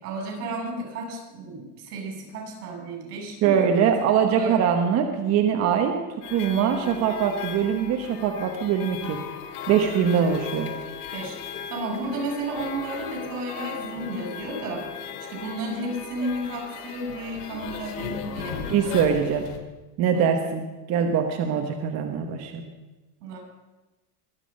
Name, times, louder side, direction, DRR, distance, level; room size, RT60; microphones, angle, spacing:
voice 1, 0.0-3.9 4.4-4.6 11.1-14.9 15.3-18.8 20.1-20.3 23.2-23.4, right 2 dB, 80° right, 1 dB, 6.5 m, -33 dB
voice 2, 3.4-6.0 6.3-9.2 9.7-10.7 18.7-19.5 20.0-22.6, right 7 dB, 35° right, 4 dB, 1.2 m, -23 dB
sound 1, 6.2-19.6, left 7 dB, 90° left, 2.2 m, -37 dB
22.5 x 8.5 x 5.3 m, 1.1 s
supercardioid pair, 155°, 45 cm